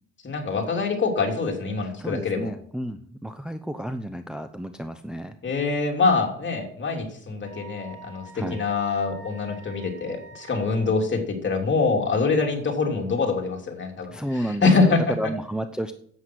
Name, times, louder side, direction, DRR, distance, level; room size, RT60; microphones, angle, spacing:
voice 1, 0.2-2.5 5.4-14.1 14.6-15.0, left 4 dB, 40° left, 2 dB, 3.1 m, -24 dB
voice 2, 1.8-5.3 8.3-8.6 14.1-15.9, right 1 dB, 5° right, 7 dB, 0.7 m, -31 dB
Wind instrument woodwind instrument, 7.4-10.9, right 2 dB, 80° right, 3.6 m, -46 dB
11.0 x 8.4 x 6.2 m, 0.62 s
cardioid pair, 90°, 30 cm